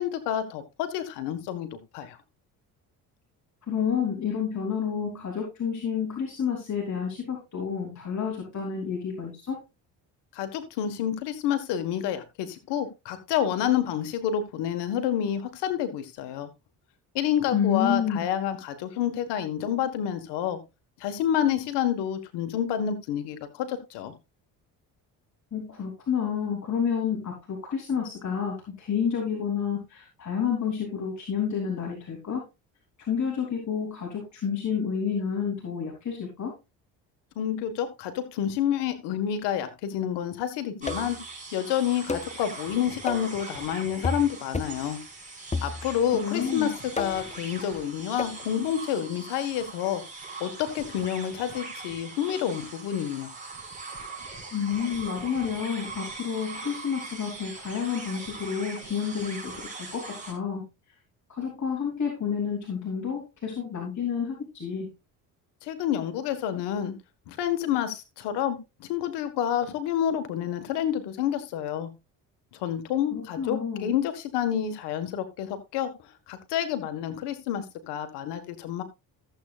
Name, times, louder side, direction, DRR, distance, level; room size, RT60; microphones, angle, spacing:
voice 1, 0.0-2.2 10.3-16.5 17.1-20.6 21.0-24.1 37.3-41.2 41.5-45.0 45.6-50.0 50.4-53.3 65.6-66.9 67.3-71.9 72.5-75.9 76.3-78.8, left 10 dB, 85° left, 10 dB, 1.7 m, -29 dB
voice 2, 3.7-9.6 17.5-18.2 25.5-32.4 33.1-36.5 46.1-46.7 54.5-60.6 61.3-64.9 73.1-73.9, left 7 dB, 45° left, -1 dB, 3.6 m, -29 dB
sound 1, 40.8-60.3, right 3 dB, 20° right, 5.4 m, -41 dB
sound 2, 40.9-41.2 42.1-42.4 43.1-43.4 44.0-44.3 44.5-44.8 45.5-46.1 47.0-47.4 48.2-48.4, left 3 dB, 15° left, 0.9 m, -32 dB
15.0 x 8.1 x 2.5 m, 0.25 s
supercardioid pair, 75°, 40 cm